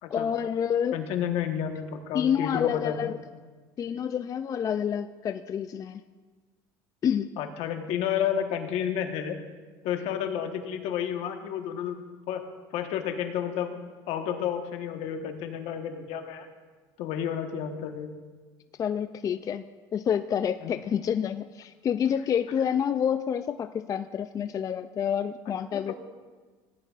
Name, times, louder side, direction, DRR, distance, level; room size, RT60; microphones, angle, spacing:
voice 1, 0.1-1.0 2.1-3.2 3.8-6.0 7.0-7.3 18.8-19.6 19.9-25.9, left 8 dB, 30° left, 10 dB, 0.3 m, -28 dB
voice 2, 0.9-3.1 7.4-9.4 9.8-12.0 12.3-12.4 12.7-13.8 14.1-16.5 17.0-18.1 20.6-20.8 25.7-25.9, left 9 dB, 70° left, 5 dB, 1.3 m, -31 dB
17.5 x 10.5 x 2.5 m, 1.4 s
cardioid pair, 115°, 11 cm